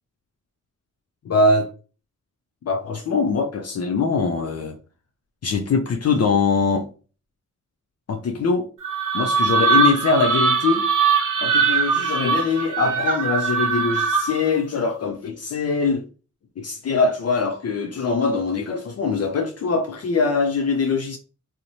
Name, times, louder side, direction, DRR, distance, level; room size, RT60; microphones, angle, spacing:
voice 1, 1.2-1.7 2.7-4.8 5.4-6.9 8.1-8.7 9.1-10.9 11.4-16.0 16.6-21.2, left 4 dB, 55° left, 0.4 m, -22 dB
sound 1, 8.8-14.5, right 5 dB, 75° right, 0.7 m, -21 dB
2.7 x 2.0 x 2.6 m
cardioid pair, 55°, 31 cm